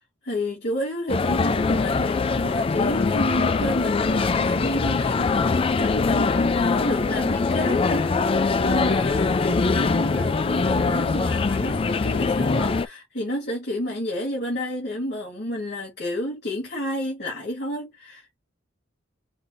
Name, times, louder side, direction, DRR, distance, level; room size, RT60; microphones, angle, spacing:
voice 1, 0.3-18.4, left 1 dB, 55° left, 2.1 m, -30 dB
sound 1, 1.1-12.9, left 4 dB, 30° left, 0.3 m, -22 dB
5.0 x 2.5 x 4.1 m
head